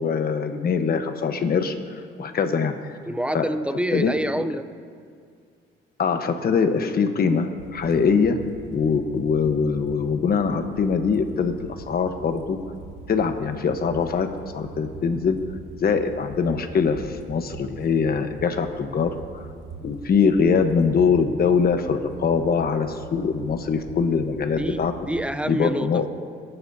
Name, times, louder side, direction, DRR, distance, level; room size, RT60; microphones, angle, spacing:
voice 1, 0.0-1.8 2.2-2.9 3.3-3.4 3.9-4.1 6.0-8.4 8.7-11.5 11.8-12.6 13.1-14.3 14.5-15.4 15.8-19.1 19.8-24.9 25.5-26.1, left 5 dB, 50° left, 7 dB, 1.2 m, -22 dB
voice 2, 3.0-4.8 24.6-26.1, right 1 dB, 5° right, 11 dB, 0.6 m, -27 dB
sound 1, 7.5-25.3, right 4 dB, 75° right, 2.0 m, -42 dB
27.0 x 11.5 x 2.8 m, 2.2 s
cardioid pair, 105°, 21 cm